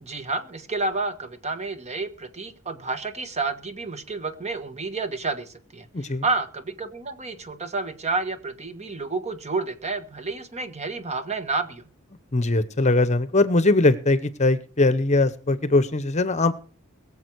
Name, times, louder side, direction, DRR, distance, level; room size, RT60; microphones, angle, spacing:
voice 1, 0.0-11.8, right 3 dB, 30° right, 10 dB, 1.4 m, -30 dB
voice 2, 5.9-6.2 12.3-16.6, left 2 dB, 35° left, 14 dB, 0.9 m, -21 dB
22.0 x 7.4 x 4.7 m, 0.36 s
head